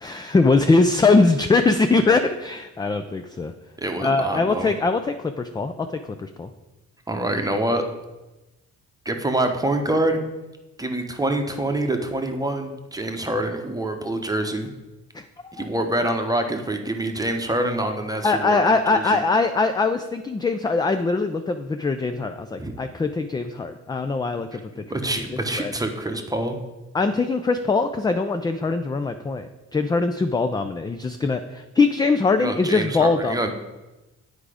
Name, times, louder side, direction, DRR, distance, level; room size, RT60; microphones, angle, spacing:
voice 1, 0.0-3.5 4.0-6.5 15.1-15.7 18.2-25.0 25.6-25.7 26.9-33.5, left 3 dB, 15° left, 8 dB, 0.3 m, -22 dB
voice 2, 3.8-4.7 7.1-7.8 9.0-10.2 10.8-14.7 15.5-18.6 18.9-19.2 22.6-22.8 24.5-26.6 32.4-33.5, right 1 dB, 10° right, 5 dB, 0.9 m, -26 dB
8.2 x 4.9 x 4.9 m, 1.1 s
cardioid pair, 90°, 30 cm